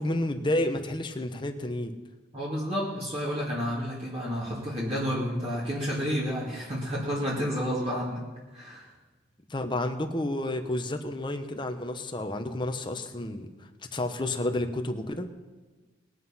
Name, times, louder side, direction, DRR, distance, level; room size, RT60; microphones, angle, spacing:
voice 1, 0.0-1.9 9.5-13.5 13.9-15.3, left 1 dB, 25° left, 6 dB, 1.0 m, -30 dB
voice 2, 2.3-8.2 8.5-8.9, equal, 30° right, -6 dB, 2.4 m, -30 dB
20.5 x 7.9 x 5.7 m, 1.3 s
head